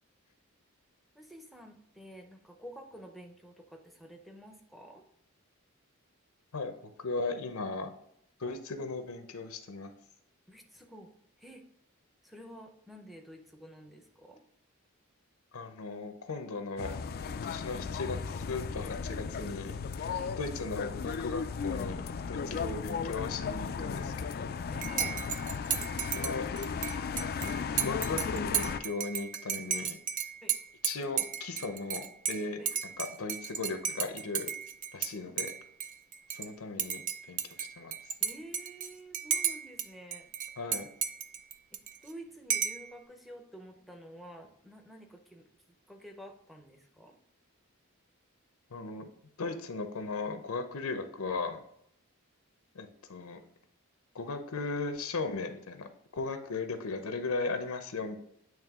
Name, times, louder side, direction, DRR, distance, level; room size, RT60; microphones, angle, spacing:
voice 1, 1.1-5.0 10.5-11.1 11.4-11.6 12.2-14.4 20.1-20.3 22.4-22.7 24.7-25.2 30.4-30.5 32.6-32.7 35.3-35.4 38.2-40.3 42.0-45.5 45.9-47.2, equal, ahead, 3 dB, 0.7 m, -50 dB
voice 2, 6.5-7.9 8.4-9.9 15.5-17.0 17.4-24.6 26.0-26.5 27.8-30.0 30.8-34.5 34.9-35.5 36.3-37.9 40.6-40.9 48.7-49.1 49.4-51.6 52.7-53.4 54.1-58.2, left 3 dB, 80° left, 7 dB, 0.7 m, -37 dB
sound 1, 16.8-28.8, left 6 dB, 45° left, 0.3 m, -35 dB
Dishes pots and pans / Cutlery silverware / Chink clink, 24.8-35.1 35.4-36.5 36.8-39.9 40.1-42.1 42.5-42.9, right 8 dB, 35° right, 0.4 m, -34 dB
8.9 x 3.1 x 3.6 m, 0.73 s
head